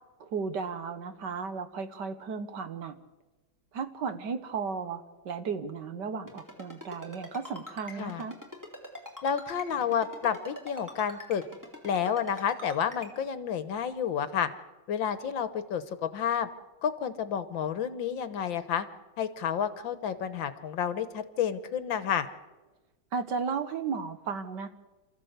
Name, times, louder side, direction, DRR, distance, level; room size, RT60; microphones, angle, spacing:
voice 1, 0.2-3.0 3.7-8.4 23.1-24.7, right 5 dB, 60° right, 10 dB, 1.6 m, -34 dB
Ringtone, 6.3-13.1, left 1 dB, 10° right, 3.4 m, -43 dB
voice 2, 9.2-11.4 11.8-14.5 14.9-16.5 16.8-18.9 19.2-22.3, left 8 dB, 70° left, 12 dB, 1.8 m, -30 dB
27.5 x 14.5 x 8.1 m, 1.2 s
omnidirectional pair, 2.3 m